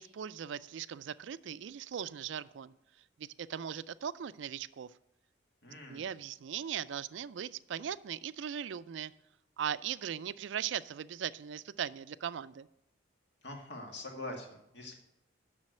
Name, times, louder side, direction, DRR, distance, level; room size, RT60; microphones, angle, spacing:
voice 1, 0.0-2.7 3.2-4.9 5.9-9.1 9.6-12.7, right 8 dB, 75° right, 17 dB, 0.4 m, -39 dB
voice 2, 5.6-6.1 13.4-14.9, left 2 dB, 65° left, 2 dB, 2.1 m, -44 dB
7.4 x 6.2 x 7.8 m, 0.84 s
head